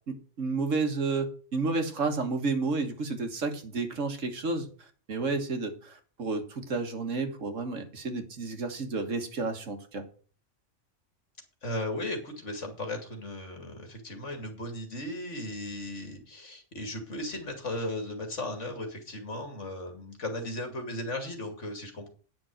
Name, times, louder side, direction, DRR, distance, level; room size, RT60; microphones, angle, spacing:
voice 1, 0.4-10.1, right 3 dB, 85° right, 7 dB, 1.9 m, -31 dB
voice 2, 11.6-22.1, left 1 dB, 70° left, 5 dB, 2.9 m, -36 dB
9.6 x 6.1 x 7.7 m, 0.41 s
omnidirectional pair, 1.3 m